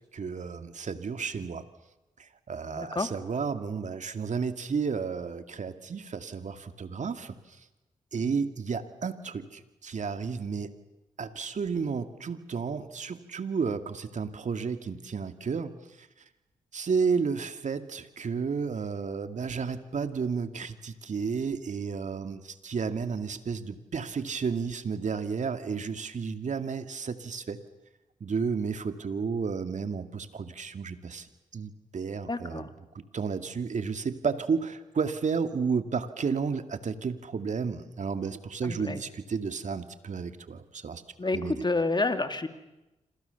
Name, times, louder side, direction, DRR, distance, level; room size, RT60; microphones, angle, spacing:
voice 1, 0.1-1.6 2.2-7.4 8.1-10.7 11.2-15.7 16.7-27.6 28.2-32.7 32.9-41.0 41.3-41.6, right 5 dB, 60° right, 9 dB, 2.3 m, -32 dB
voice 2, 2.6-3.1 8.2-8.3 32.3-32.7 38.6-39.0 41.2-42.5, left 3 dB, 30° left, 8 dB, 2.9 m, -29 dB
27.5 x 27.0 x 7.0 m, 0.96 s
supercardioid pair, 45°, 14 cm